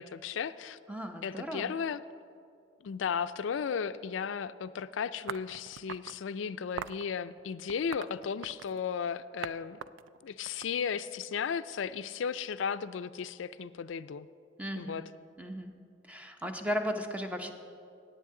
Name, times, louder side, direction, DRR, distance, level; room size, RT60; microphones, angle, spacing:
voice 1, 0.0-0.8 1.2-2.0 2.8-9.8 10.2-14.3 14.8-15.0, left 6 dB, 85° left, 14 dB, 0.4 m, -35 dB
voice 2, 0.9-1.7 14.6-15.0 15.4-15.7 16.1-17.5, equal, 10° right, 5 dB, 0.7 m, -35 dB
sound 1, 5.3-6.2 6.8-7.0 7.7-8.8 9.4-9.5 9.8-11.2, right 8 dB, 85° right, 0.3 m, -41 dB
18.0 x 8.3 x 3.8 m, 2.3 s
head